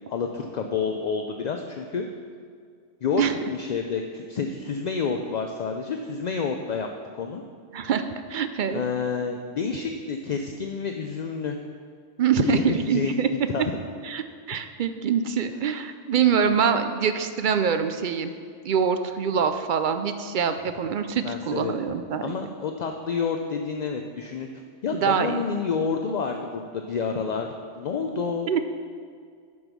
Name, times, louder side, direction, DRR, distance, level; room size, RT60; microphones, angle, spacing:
voice 1, 0.1-2.1 3.0-3.2 3.5-6.9 7.1-7.4 8.7-11.6 12.4-13.1 13.5-13.7 21.2-21.8 22.2-24.5 24.8-27.5 27.7-28.5, left 5 dB, 55° left, 4 dB, 0.5 m, -29 dB
voice 2, 7.7-8.8 12.2-13.3 14.0-18.3 18.6-22.3 25.0-25.4 28.5-28.6, right 7 dB, 60° right, 9 dB, 0.5 m, -24 dB
9.6 x 5.3 x 6.1 m, 2.1 s
omnidirectional pair, 1.2 m